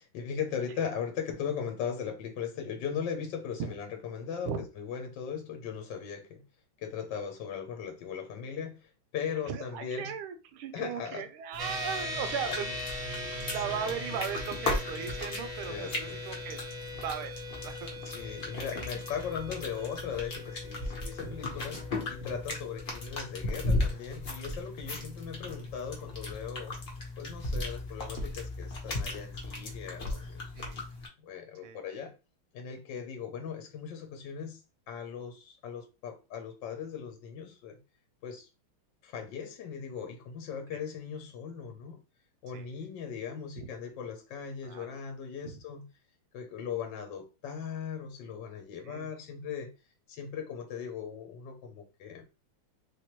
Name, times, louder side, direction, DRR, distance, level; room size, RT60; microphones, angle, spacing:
voice 1, 0.0-4.5 4.8-6.4 6.8-10.1 10.7-11.2 15.7-16.2 18.0-21.8 22.1-26.8 27.2-30.5 31.2-32.1 32.5-34.6 34.9-37.8 38.2-38.5 39.0-42.0 42.4-45.9 46.3-49.7 50.1-52.2, left 7 dB, 65° left, 1.2 m, -38 dB
voice 2, 9.4-12.8 13.1-16.6 16.9-18.0 21.2-21.3 22.2-22.4 24.9-25.1 30.6-30.8 31.6-32.0 40.7-40.8 42.5-42.7 43.5-43.7 44.6-45.0 45.4-45.6 48.8-49.1, right 7 dB, 85° right, 1.5 m, -38 dB
sound 1, 11.5-31.1, left 2 dB, 45° left, 0.8 m, -37 dB
sound 2, 11.6-25.2, left 1 dB, 60° right, 0.5 m, -41 dB
3.3 x 3.3 x 2.9 m
omnidirectional pair, 2.4 m